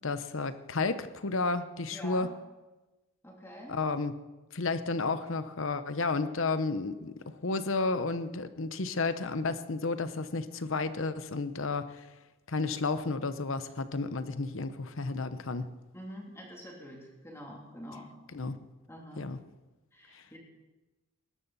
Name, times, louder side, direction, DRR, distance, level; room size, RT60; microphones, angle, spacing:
voice 1, 0.0-2.3 3.7-4.1 4.5-12.1 12.5-15.7 18.3-18.6 19.2-19.4 20.1-20.2, left 3 dB, 65° left, 11 dB, 0.9 m, -32 dB
voice 2, 1.9-2.3 3.2-3.8 15.9-18.1 18.9-19.3 19.9-20.4, equal, 10° left, -2 dB, 3.1 m, -46 dB
20.0 x 13.0 x 4.2 m, 1.1 s
head